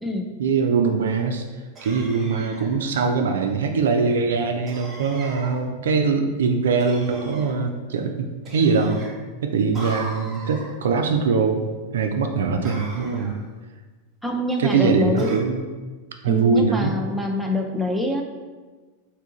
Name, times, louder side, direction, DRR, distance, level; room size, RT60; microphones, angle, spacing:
voice 1, 0.4-1.4 1.8-9.0 9.4-11.6 11.9-13.4 14.6-15.6 16.2-17.0, right 5 dB, 60° right, 5 dB, 0.3 m, -22 dB
sound 1, 1.8-2.8 4.7-5.6 6.8-7.5 8.4-9.1 9.7-10.7 12.6-13.4 15.2-15.4, right 1 dB, 20° right, 1.0 m, -39 dB
voice 2, 14.2-15.4 16.3-18.2, left 1 dB, ahead, 0 dB, 0.4 m, -25 dB
3.5 x 2.6 x 3.8 m, 1.3 s
figure-of-eight pair, 90°, 0 cm